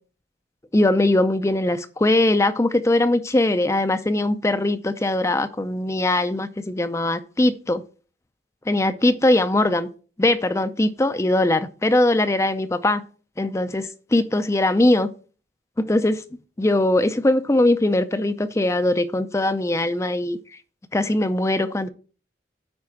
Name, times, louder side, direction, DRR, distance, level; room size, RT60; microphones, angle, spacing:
voice 1, 0.7-7.8 8.7-9.9 10.2-13.0 13.4-15.1 15.8-16.2 16.6-20.4 20.9-21.9, left 1 dB, 15° left, 0.4 m, -21 dB
9.6 x 4.3 x 5.7 m
head